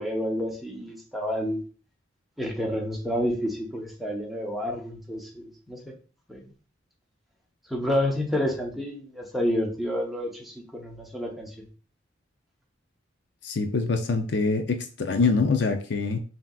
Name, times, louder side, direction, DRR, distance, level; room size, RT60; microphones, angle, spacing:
voice 1, 0.0-1.6 2.4-5.9 6.3-6.5 7.7-11.7, equal, ahead, 0.9 m, -29 dB
voice 2, 13.4-16.2, left 4 dB, 60° left, 0.5 m, -24 dB
5.6 x 2.8 x 2.4 m
head